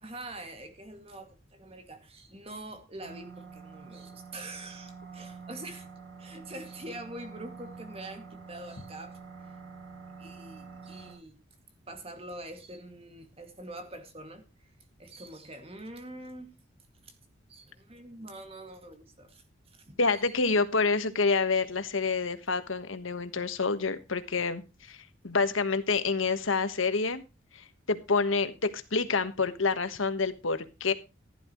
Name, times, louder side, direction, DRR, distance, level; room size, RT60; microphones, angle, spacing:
voice 1, 0.0-5.9 6.2-9.5 10.2-11.3 11.9-14.7 15.0-16.5 17.0-17.2 17.5-19.4 19.7-20.0, right 1 dB, 30° right, 2.2 m, -45 dB
sound 1, 3.0-11.1, right 5 dB, 45° right, 7.0 m, -47 dB
voice 2, 20.0-24.6 24.9-25.0 25.2-27.2 27.5-30.9, left 4 dB, 75° left, 1.4 m, -28 dB
15.0 x 11.5 x 3.1 m
head